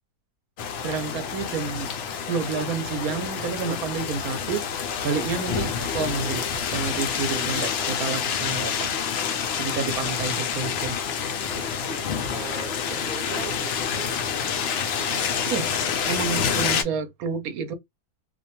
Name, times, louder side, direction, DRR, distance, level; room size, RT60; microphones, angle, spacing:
sound 1, 0.6-16.8, left 7 dB, 75° left, 0.6 m, -28 dB
voice 1, 0.8-1.9 2.3-8.9 9.6-11.0 15.4-15.7 16.0-17.7, right 5 dB, 75° right, 1.0 m, -30 dB
voice 2, 11.4-14.1 14.6-15.2, right 5 dB, 50° right, 0.6 m, -40 dB
2.7 x 2.2 x 2.7 m
omnidirectional pair, 1.7 m